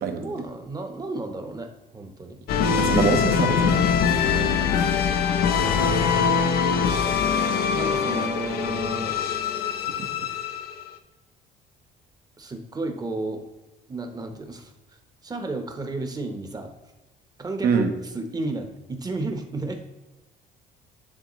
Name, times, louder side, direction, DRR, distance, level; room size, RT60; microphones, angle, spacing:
voice 1, 0.2-2.4 7.7-9.1 12.4-13.4 13.9-14.7 15.2-16.7 17.4-19.8, right 2 dB, 20° right, 5 dB, 1.0 m, -32 dB
sound 1, 2.5-10.9, left 6 dB, 70° left, 0.6 m, -23 dB
voice 2, 2.8-3.8 4.2-4.7 17.6-17.9, right 6 dB, 65° right, 5 dB, 1.1 m, -25 dB
9.7 x 3.7 x 3.1 m, 1.0 s
cardioid pair, 110°, 17 cm